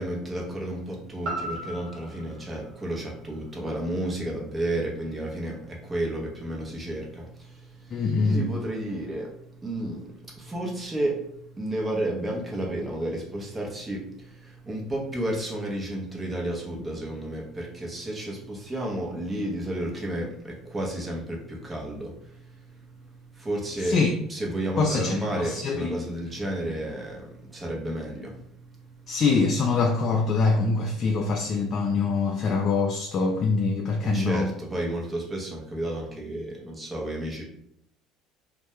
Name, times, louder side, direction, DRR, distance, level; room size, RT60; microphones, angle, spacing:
voice 1, 0.0-11.3 11.5-24.0 24.3-28.9 34.1-37.4, right 1 dB, 20° right, -1 dB, 0.7 m, -32 dB
sound 1, 1.2-5.3 5.8-5.9, right 1 dB, 55° right, 0.8 m, -39 dB
voice 2, 7.9-8.4 23.8-24.1 24.8-26.0 29.1-34.5, left 4 dB, 45° left, 2 dB, 0.3 m, -24 dB
2.2 x 2.1 x 2.9 m, 0.71 s
supercardioid pair, 105°, 0 cm